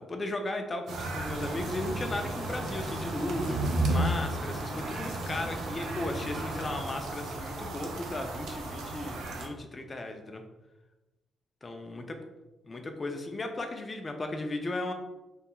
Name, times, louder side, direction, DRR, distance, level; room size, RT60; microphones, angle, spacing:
voice 1, 0.0-10.4 11.6-12.2 12.6-14.9, left 2 dB, 30° left, 4 dB, 0.3 m, -36 dB
sound 1, 0.9-9.5, right 2 dB, 85° right, 0.4 m, -34 dB
sound 2, 1.2-6.8, right 1 dB, 60° right, 0.8 m, -39 dB
2.3 x 2.2 x 2.9 m, 1.0 s
cardioid pair, 90°, 0 cm